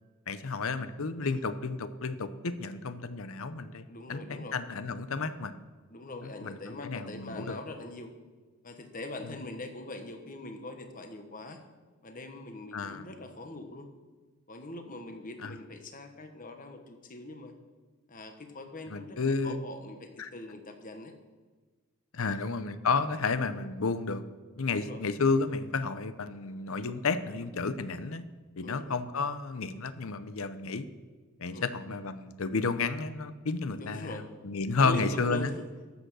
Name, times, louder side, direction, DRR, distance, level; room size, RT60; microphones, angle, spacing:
voice 1, 0.3-5.6 6.2-7.6 9.2-9.3 12.7-13.0 15.4-15.6 18.9-19.6 20.2-20.3 22.1-24.2 24.6-28.2 28.6-30.9 31.4-35.5, left 4 dB, 65° left, 12 dB, 0.7 m, -31 dB
voice 2, 3.9-4.6 5.9-8.1 8.6-11.6 12.0-13.9 14.5-17.5 18.1-21.1 22.2-22.4 24.7-25.0 28.6-29.0 31.5-31.7 33.8-34.2 34.8-35.6, left 2 dB, 35° left, 6 dB, 1.3 m, -42 dB
13.0 x 7.9 x 6.3 m, 1.3 s
head